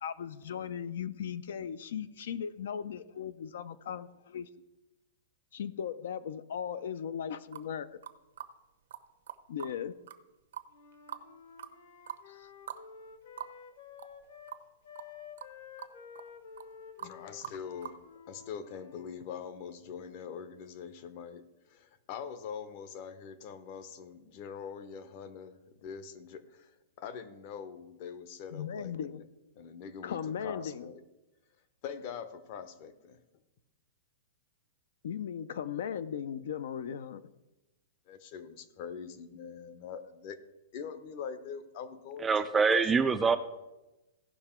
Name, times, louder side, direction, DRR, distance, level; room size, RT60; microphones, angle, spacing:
voice 1, 0.0-4.5 5.5-7.9 9.5-9.9 12.3-12.5 28.5-29.3 30.0-30.9 35.0-37.2, left 8 dB, 70° left, 14 dB, 0.5 m, -37 dB
sound 1, 7.5-7.7 8.0-8.5 8.9-9.0 9.3-9.7 10.1-10.2 10.5-11.3 11.6-11.7 12.1-12.2 12.7-12.8 13.1-13.2 13.4-13.5 14.0-14.2 14.5-14.6 15.0-15.1 15.4-15.5 15.8-16.3 16.6-16.7 17.0-17.2 17.4-18.0, right 9 dB, 80° right, 0.8 m, -43 dB
Wind instrument woodwind instrument, 10.7-14.6 14.8-19.1, left 7 dB, 55° left, 1.2 m, -51 dB
voice 2, 17.0-29.2 29.5-31.0 31.8-33.2 38.1-40.4 40.7-42.3 42.7-42.8, left 7 dB, 35° left, 12 dB, 0.7 m, -43 dB
voice 3, 42.2-43.4, right 5 dB, 10° right, 9 dB, 0.3 m, -25 dB
16.0 x 5.8 x 4.4 m, 1.0 s
supercardioid pair, 170°, 0 cm